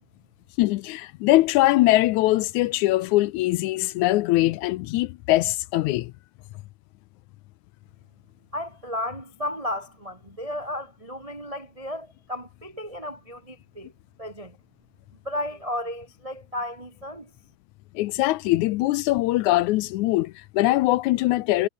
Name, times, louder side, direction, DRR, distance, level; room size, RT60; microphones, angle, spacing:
voice 1, 0.6-6.1 18.0-21.7, left 17 dB, 75° left, 1.9 m, -22 dB
voice 2, 8.5-13.9 14.2-14.6 15.2-17.3, left 1 dB, 45° right, 0.4 m, -34 dB
omnidirectional pair, 3.6 m